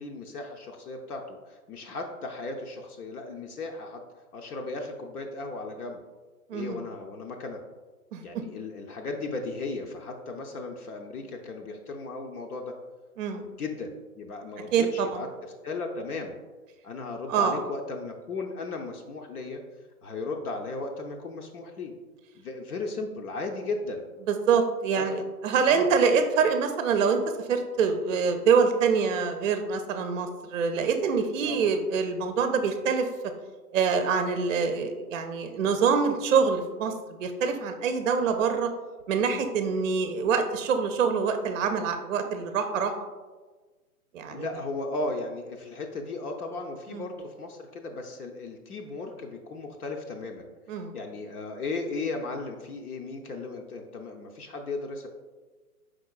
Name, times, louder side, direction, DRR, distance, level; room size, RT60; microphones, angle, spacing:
voice 1, 0.0-4.0 4.3-6.0 6.5-7.6 8.2-12.7 13.3-16.4 16.8-19.6 20.0-21.9 22.3-24.0 25.0-25.1 25.7-25.9 31.4-31.7 44.3-55.1, left 3 dB, 75° left, 2 dB, 0.7 m, -36 dB
voice 2, 6.5-6.8 8.1-8.2 13.2-13.5 14.7-15.1 17.3-17.6 24.3-33.1 33.7-36.9 37.2-38.7 39.1-42.9 44.1-44.5 46.9-47.0 50.7-50.9, right 6 dB, 55° right, 7 dB, 0.5 m, -25 dB
4.9 x 3.8 x 2.3 m, 1.3 s
hypercardioid pair, 140°, 46 cm